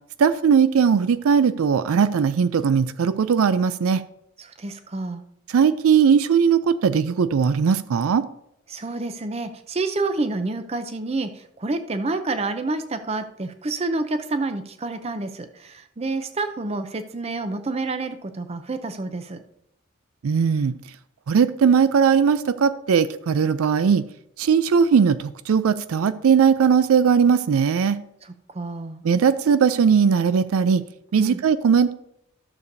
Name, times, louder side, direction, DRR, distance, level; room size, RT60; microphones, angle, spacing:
voice 1, 0.2-4.0 5.5-8.3 20.2-20.8 21.3-24.0 24.4-28.0 29.0-30.8 31.1-31.9, right 6 dB, 80° right, 14 dB, 0.4 m, -19 dB
voice 2, 4.4-5.2 8.7-19.4 28.5-29.0 31.2-31.4, right 3 dB, 30° right, 9 dB, 0.5 m, -28 dB
13.5 x 6.8 x 2.7 m, 0.77 s
head